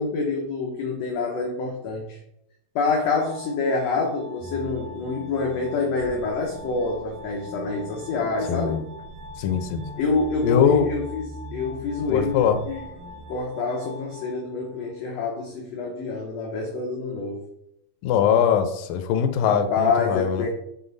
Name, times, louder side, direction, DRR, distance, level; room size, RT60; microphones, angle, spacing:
voice 1, 0.0-2.2 2.7-8.8 10.0-12.8 13.3-17.4 19.4-20.5, left 4 dB, 65° left, 0 dB, 1.7 m, -27 dB
Glass, 3.0-15.0, left 4 dB, 55° right, 2.0 m, -45 dB
sound 1, 4.4-13.4, equal, 85° right, 3.0 m, -42 dB
voice 2, 8.5-8.8 9.4-9.8 10.4-10.9 12.1-12.6 18.0-20.5, left 8 dB, 90° left, 8 dB, 2.4 m, -21 dB
8.9 x 3.7 x 4.0 m, 0.80 s
omnidirectional pair, 3.9 m